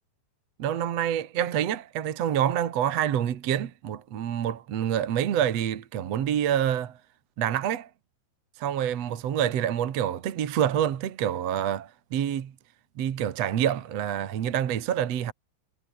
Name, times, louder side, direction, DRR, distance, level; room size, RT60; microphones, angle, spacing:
voice 1, 0.6-7.0 7.4-7.9 8.6-12.5 13.0-15.3, right 10 dB, 50° right, 2.3 m, -27 dB
omnidirectional pair, 4.4 m